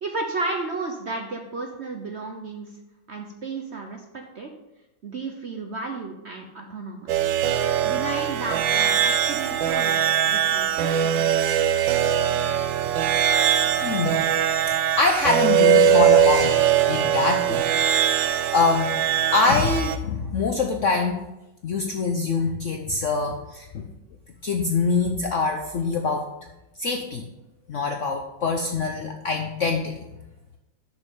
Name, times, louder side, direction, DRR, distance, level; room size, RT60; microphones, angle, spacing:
voice 1, 0.0-2.7 3.1-4.5 5.0-7.3 7.8-9.9 10.2-11.2, right 3 dB, 55° right, 3 dB, 0.8 m, -33 dB
sound 1, 7.1-20.0, right 9 dB, 85° right, 1.4 m, -21 dB
voice 2, 13.8-14.3 15.0-19.0 19.3-21.3 21.6-23.9 24.4-26.3 26.8-27.3 27.7-30.0, left 4 dB, 65° left, 4 dB, 0.8 m, -24 dB
11.0 x 6.2 x 3.7 m, 0.95 s
omnidirectional pair, 2.0 m